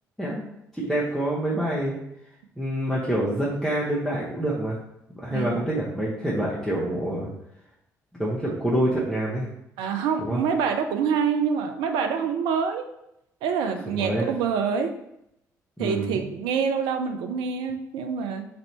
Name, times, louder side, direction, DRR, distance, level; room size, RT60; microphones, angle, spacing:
voice 1, 0.7-2.0 2.6-4.8 5.2-7.3 8.2-9.5 10.2-10.4 13.9-14.3 15.8-16.2, right 1 dB, ahead, -7 dB, 0.9 m, -26 dB
voice 2, 5.3-5.6 9.8-12.9 13.4-14.9 15.8-18.5, right 6 dB, 60° right, 6 dB, 0.4 m, -26 dB
3.2 x 2.6 x 4.1 m, 0.79 s
figure-of-eight pair, 45°, 9 cm